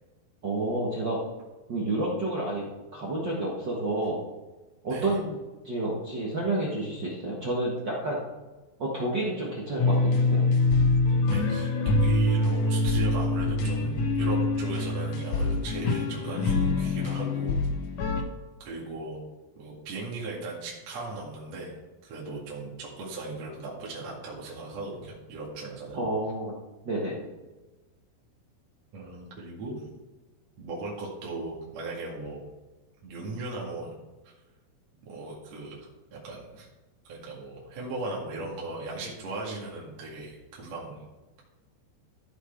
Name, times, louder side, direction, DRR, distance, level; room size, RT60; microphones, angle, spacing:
voice 1, 0.4-1.2 1.7-2.7 2.9-4.2 4.8-5.4 5.6-8.2 8.8-10.4 25.9-26.5 26.8-27.3, right 2 dB, 70° right, -5 dB, 1.0 m, -30 dB
sound 1, 9.8-18.2, left 2 dB, 85° left, 1.4 m, -25 dB
voice 2, 11.3-11.7 12.0-17.6 18.6-19.2 19.6-26.0 28.9-29.8 30.6-32.4 33.0-33.9 34.2-34.3 35.0-36.7 37.0-41.0, right 2 dB, 45° right, -4 dB, 2.9 m, -37 dB
14.5 x 6.3 x 4.6 m, 1.2 s
omnidirectional pair, 4.7 m